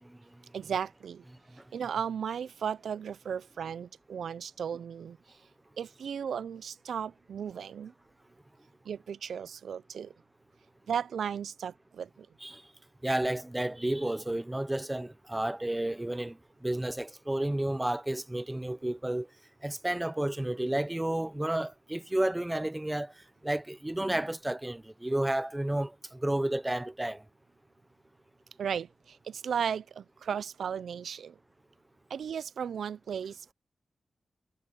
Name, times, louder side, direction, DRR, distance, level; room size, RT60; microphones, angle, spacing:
voice 1, 0.5-1.2 1.7-5.2 5.8-7.9 8.8-10.1 10.9-12.3 28.6-31.4 32.1-33.5, right 7 dB, 90° right, 0.4 m, -35 dB
voice 2, 13.0-19.3 19.6-23.1 23.4-27.2, right 1 dB, 10° right, 0.7 m, -31 dB
wide cardioid pair, 170°, 0 cm